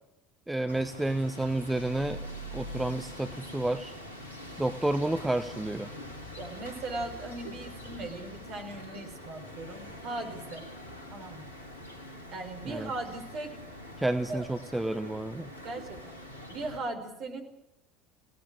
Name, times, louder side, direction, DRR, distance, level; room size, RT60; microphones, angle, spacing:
voice 1, 0.5-2.2 2.5-3.9 4.6-5.9 12.7-12.9 14.0-15.5, right 1 dB, 5° right, 9 dB, 1.3 m, -30 dB
sound 1, 0.7-16.8, left 1 dB, 75° left, 3.6 m, -44 dB
voice 2, 6.4-10.6 11.1-11.4 12.3-13.6 14.0-14.4 15.6-16.1 16.5-17.4, right 2 dB, 45° right, 5 dB, 5.5 m, -38 dB
29.0 x 18.0 x 6.6 m, 0.87 s
figure-of-eight pair, 65°, 0 cm